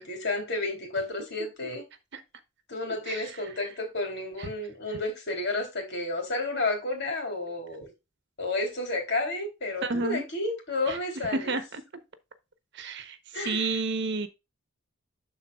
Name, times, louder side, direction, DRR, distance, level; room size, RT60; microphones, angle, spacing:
voice 1, 0.0-1.8 2.7-7.9 8.4-11.5 13.3-13.7, left 2 dB, 55° left, 3.3 m, -31 dB
voice 2, 9.8-10.2 10.9-11.0 11.3-11.8 12.7-13.2 13.4-14.3, right 3 dB, 55° right, 1.0 m, -30 dB
12.5 x 4.1 x 2.4 m
head